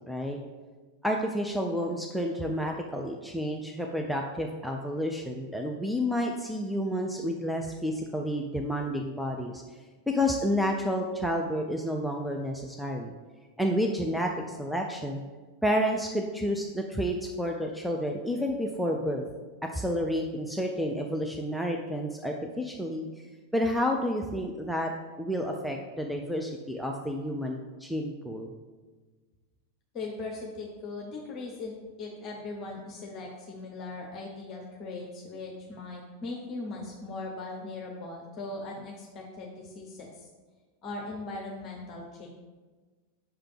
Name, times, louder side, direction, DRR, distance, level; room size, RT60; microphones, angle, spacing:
voice 1, 0.1-0.4 1.0-9.6 10.1-13.1 13.6-15.2 15.6-19.2 19.7-23.1 23.5-24.9 25.2-28.5, equal, ahead, 1 dB, 0.4 m, -30 dB
voice 2, 29.9-40.3 40.8-42.3, left 3 dB, 35° left, 0 dB, 0.9 m, -39 dB
5.6 x 3.4 x 5.6 m, 1.3 s
figure-of-eight pair, 90°, 0 cm